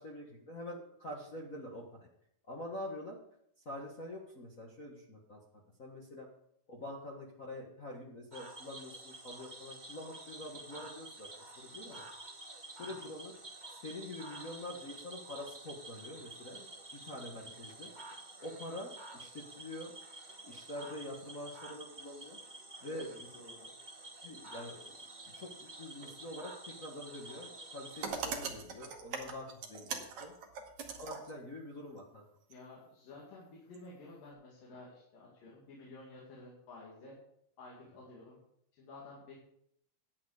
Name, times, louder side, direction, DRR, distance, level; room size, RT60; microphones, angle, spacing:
voice 1, 0.0-2.1 2.5-3.2 3.6-5.4 5.8-6.3 6.7-12.0 12.8-13.3 13.7-16.7 17.0-17.9 18.4-19.9 20.4-22.4 22.8-23.3 24.2-24.8 25.3-26.5 26.8-30.3 31.0-32.2, left 1 dB, 50° left, -3 dB, 0.9 m, -45 dB
Cricket / Frog, 8.3-28.1, right 2 dB, 35° right, 0.6 m, -50 dB
voice 2, 22.9-23.7 32.5-37.2 37.6-38.4 38.7-39.3, left 2 dB, 85° left, -4 dB, 4.0 m, -52 dB
sound 1, 27.9-31.4 32.5-32.6 33.7-33.8, right 5 dB, 60° right, 2.6 m, -41 dB
11.0 x 8.8 x 4.9 m, 0.72 s
omnidirectional pair, 3.9 m